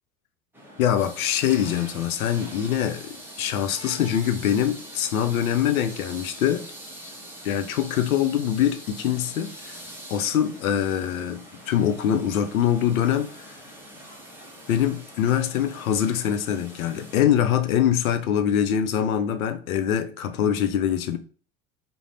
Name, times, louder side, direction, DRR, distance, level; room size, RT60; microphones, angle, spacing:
sound 1, 0.5-17.2, right 1 dB, 5° right, 0.7 m, -43 dB
voice 1, 0.8-6.7 7.4-9.8 10.1-13.5 14.7-21.2, left 9 dB, 80° left, 0.5 m, -24 dB
2.5 x 2.0 x 3.1 m
hypercardioid pair, 80°, 41 cm